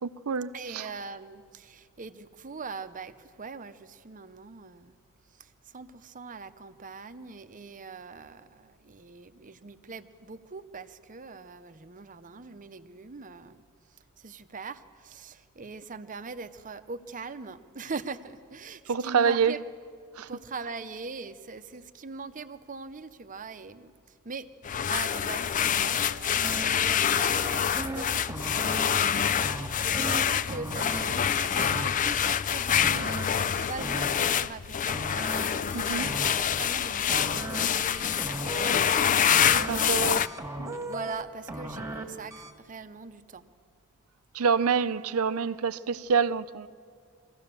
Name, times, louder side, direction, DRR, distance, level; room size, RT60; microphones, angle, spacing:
voice 1, 0.0-0.9 18.9-19.6 20.2-20.3 35.7-36.1 39.7-40.2 40.6-40.7 44.3-46.7, right 6 dB, 75° right, 0.5 m, -27 dB
voice 2, 0.5-4.9 5.4-5.5 5.7-13.6 14.2-19.6 20.2-23.9 24.2-24.5 24.9-35.0 35.4-35.5 35.9-38.5 38.9-40.2 40.8-43.4, right 4 dB, 35° right, 0.7 m, -42 dB
sound 1, 24.6-40.3, left 8 dB, 35° left, 0.4 m, -26 dB
sound 2, 26.4-26.6 26.9-28.0 28.3-28.8 29.1-30.2 30.5-31.0 31.3-32.1 32.7-33.2 33.5-34.3 34.9-35.4 35.7-36.5 37.1-37.6 37.9-38.7 39.3-39.8 40.1-41.2 41.5-42.0 42.3-42.5, right 2 dB, 15° right, 1.7 m, -37 dB
24.0 x 16.0 x 6.8 m
head